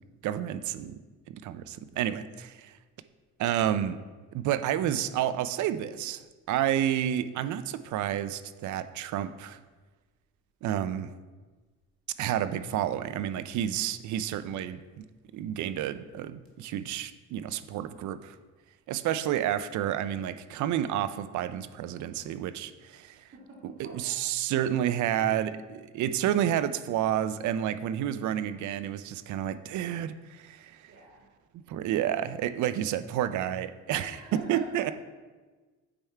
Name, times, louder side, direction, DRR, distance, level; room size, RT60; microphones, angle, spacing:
voice 1, 0.2-1.0 1.3-2.7 3.4-4.0 4.3-9.6 10.6-11.1 12.2-15.0 15.3-18.3 18.9-23.2 23.6-30.9 31.7-34.9, right 11 dB, 75° right, 12 dB, 0.5 m, -30 dB
voice 2, 23.3-24.2 30.9-31.2 33.9-34.9, right 2 dB, 50° right, -3 dB, 2.2 m, -44 dB
8.8 x 3.5 x 4.4 m, 1.3 s
cardioid pair, 90°, 30 cm